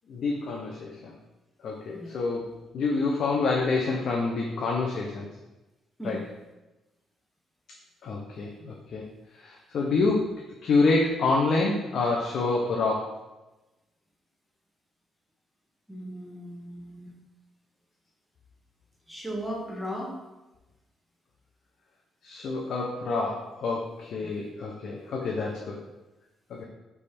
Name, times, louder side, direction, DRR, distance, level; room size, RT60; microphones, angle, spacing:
voice 1, 0.1-1.1 1.6-5.3 6.0-6.2 8.0-9.0 9.4-10.3 10.6-13.1 22.2-25.8 26.5-26.6, left 3 dB, 65° left, -1 dB, 0.6 m, -27 dB
voice 2, 15.9-17.1 19.1-20.1, equal, ahead, -3 dB, 1.2 m, -36 dB
3.4 x 3.2 x 4.2 m, 1.1 s
cardioid pair, 90°, 0 cm